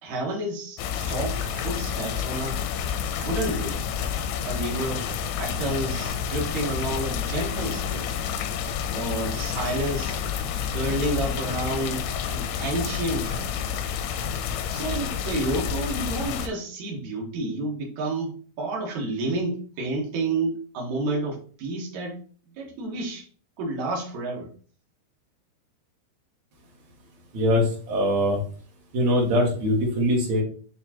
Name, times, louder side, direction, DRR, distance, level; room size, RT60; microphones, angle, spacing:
voice 1, 0.0-2.6 3.0-3.9 4.4-8.1 8.9-10.2 10.7-13.6 14.7-22.2 22.6-23.2 23.6-24.5, right 2 dB, 90° right, -3 dB, 1.6 m, -30 dB
sound 1, 0.8-16.5, left 8 dB, 85° left, 2.8 m, -29 dB
voice 2, 27.3-28.4 28.9-30.4, equal, 65° right, -2 dB, 1.8 m, -22 dB
9.2 x 3.7 x 3.0 m, 0.42 s
omnidirectional pair, 5.9 m